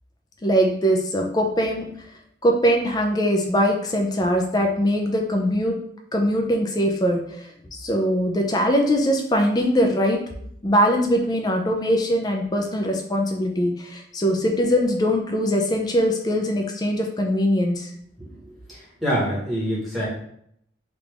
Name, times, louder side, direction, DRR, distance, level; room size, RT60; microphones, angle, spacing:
voice 1, 0.4-1.9 2.4-5.7 6.1-10.2 10.6-17.9, equal, 20° left, 2 dB, 0.4 m, -22 dB
voice 2, 18.7-20.1, equal, ahead, -8 dB, 1.2 m, -26 dB
3.4 x 2.5 x 3.3 m, 0.69 s
head